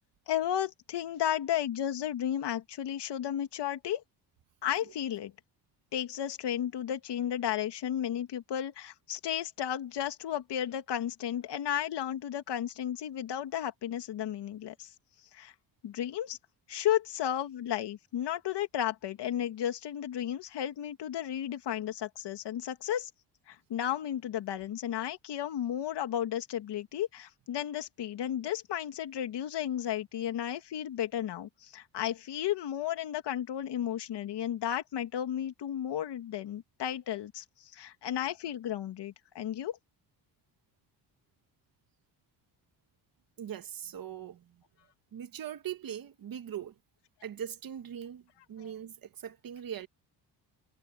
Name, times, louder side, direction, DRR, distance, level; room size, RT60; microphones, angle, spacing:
voice 1, 0.3-4.0 4.6-5.3 5.9-14.9 15.3-15.5 15.8-16.4 16.7-23.1 23.5-37.4 37.7-39.8, left 10 dB, 70° left, 2.2 m, -33 dB
voice 2, 43.4-44.6 45.1-46.8 47.2-49.9, right 9 dB, 55° right, 1.5 m, -41 dB
cardioid pair, 135°, 42 cm